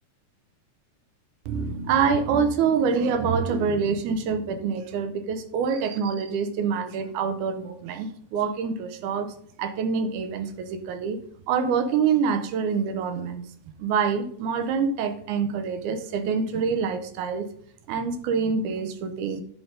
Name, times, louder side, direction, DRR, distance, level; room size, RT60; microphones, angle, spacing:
voice 1, 1.5-11.2 11.5-17.5 17.9-19.4, right 6 dB, 75° right, 9 dB, 2.1 m, -26 dB
10.5 x 3.9 x 5.3 m, 0.65 s
omnidirectional pair, 3.9 m